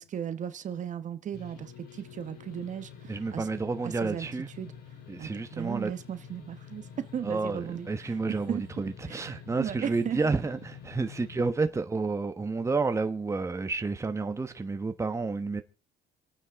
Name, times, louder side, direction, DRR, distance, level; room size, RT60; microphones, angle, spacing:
voice 1, 0.0-3.5 3.8-4.3 4.6-4.7 5.2-8.2 8.5-8.6 9.1-10.2, right 9 dB, 45° right, 1.2 m, -36 dB
sound 1, 1.3-11.5, left 7 dB, 70° left, 3.2 m, -48 dB
voice 2, 3.1-4.5 5.1-5.9 7.2-15.6, right 4 dB, 15° right, 1.1 m, -30 dB
27.5 x 9.4 x 3.6 m
cardioid pair, 110°, 17 cm